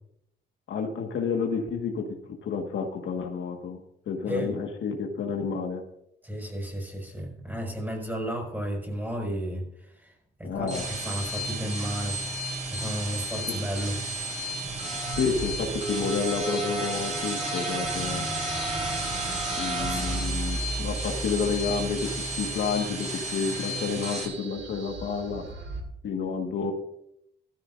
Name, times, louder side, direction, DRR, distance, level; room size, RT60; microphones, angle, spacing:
voice 1, 0.7-2.1 2.4-3.8 4.1-5.8 10.4-10.9 13.5-13.6 15.2-18.3 19.6-22.1 22.3-25.5 26.0-26.7, left 5 dB, 70° left, 3 dB, 1.7 m, -30 dB
voice 2, 6.2-9.7 9.9-10.1 10.4-10.7 11.0-12.2 12.7-14.0 19.8-20.2, equal, 10° right, 2 dB, 5.9 m, -33 dB
sound 1, 10.5-24.2, right 1 dB, 35° right, 5.6 m, -32 dB
sound 2, 15.1-25.8, right 2 dB, 65° right, 3.0 m, -37 dB
15.5 x 14.0 x 2.6 m, 0.76 s
cardioid pair, 90°, 20 cm